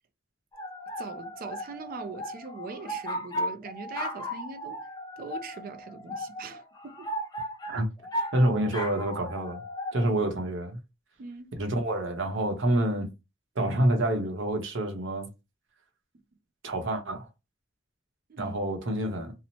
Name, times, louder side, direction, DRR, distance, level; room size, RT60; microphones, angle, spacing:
sound 1, 0.5-10.1, equal, 20° left, 0.4 m, -36 dB
voice 1, 1.0-4.9 5.2-7.1 11.2-11.5 18.3-18.6, right 4 dB, 45° right, 0.4 m, -41 dB
voice 2, 8.3-9.6 9.9-10.8 11.5-13.1 13.6-15.3 16.6-17.3 18.4-19.3, right 1 dB, 70° right, 0.8 m, -27 dB
2.8 x 2.0 x 2.8 m
head